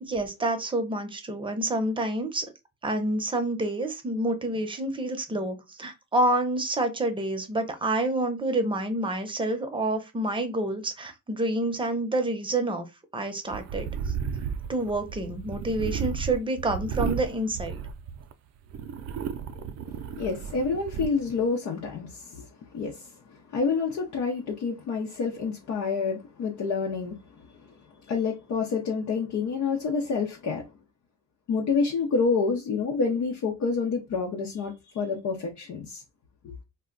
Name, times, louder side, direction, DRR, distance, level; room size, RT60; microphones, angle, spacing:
voice 1, 0.0-2.5 2.8-12.9 13.1-14.1 14.7-17.8, right 1 dB, 15° right, 0.7 m, -28 dB
sound 1, 13.5-18.3 18.7-21.1, right 7 dB, 55° right, 0.4 m, -33 dB
voice 2, 19.9-22.5 22.7-27.2 28.1-30.6 31.5-36.0 36.4-36.5, left 4 dB, 70° left, 0.7 m, -28 dB
2.3 x 2.1 x 3.7 m
cardioid pair, 90°, 30 cm